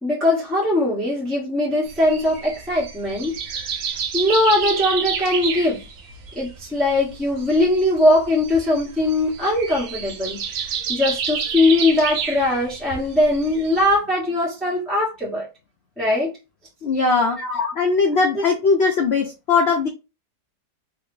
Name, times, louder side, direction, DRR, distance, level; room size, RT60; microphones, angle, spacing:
voice 1, 0.0-3.3 4.1-5.8 6.3-10.4 10.9-15.5 16.0-16.3 17.4-17.7, left 1 dB, ahead, 1.2 m, -20 dB
sound 1, 1.9-13.9, right 6 dB, 65° right, 0.9 m, -30 dB
voice 2, 16.8-17.4 17.8-19.9, left 4 dB, 75° left, 0.6 m, -19 dB
3.2 x 2.5 x 3.1 m
omnidirectional pair, 1.8 m